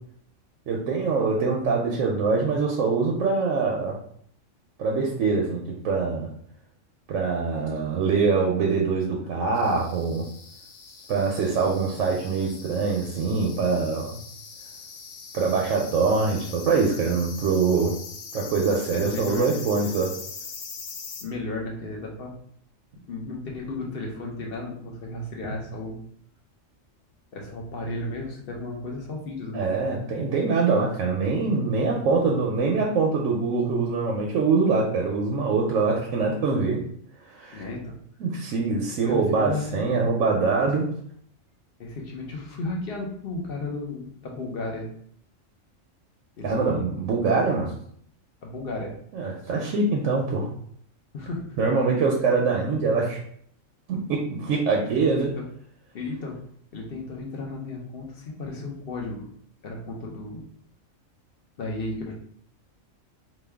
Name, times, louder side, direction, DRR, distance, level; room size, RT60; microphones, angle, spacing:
voice 1, 0.7-4.0 4.8-6.3 7.1-10.2 11.1-14.1 15.3-17.9 18.3-20.1 29.5-36.8 37.3-37.6 38.2-40.9 46.4-47.7 49.1-50.5 51.6-53.2 53.9-55.3, right 4 dB, 85° right, -1 dB, 1.0 m, -24 dB
sound 1, 9.5-21.2, left 5 dB, 75° left, 0.9 m, -42 dB
voice 2, 18.9-19.5 21.2-22.3 23.1-26.0 27.3-29.6 37.5-37.9 39.0-39.9 41.8-44.9 46.4-46.8 48.4-48.9 51.1-51.6 54.8-55.4 55.9-56.4 56.7-59.2 59.6-60.4 61.6-62.1, left 2 dB, 55° left, 0 dB, 0.9 m, -34 dB
3.0 x 2.3 x 3.4 m, 0.63 s
omnidirectional pair, 1.3 m